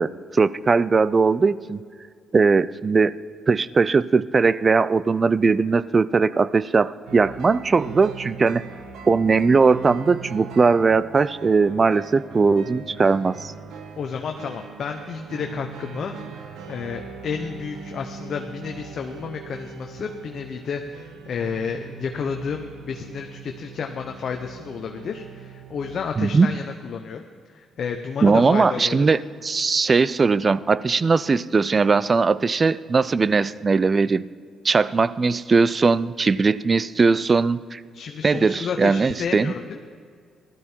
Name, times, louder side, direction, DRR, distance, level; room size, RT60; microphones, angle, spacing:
voice 1, 0.0-1.8 2.3-3.1 3.5-8.6 9.1-13.5 26.2-26.5 28.2-34.2 34.6-37.8 38.2-39.5, right 4 dB, 35° right, 18 dB, 0.4 m, -19 dB
sound 1, 7.1-26.0, right 6 dB, 85° right, 1.3 m, -40 dB
voice 2, 14.0-16.1 16.7-27.2 27.5-29.0 37.9-39.8, left 6 dB, 60° left, 4 dB, 0.9 m, -31 dB
16.0 x 12.5 x 4.5 m, 2.1 s
cardioid pair, 90°, 0 cm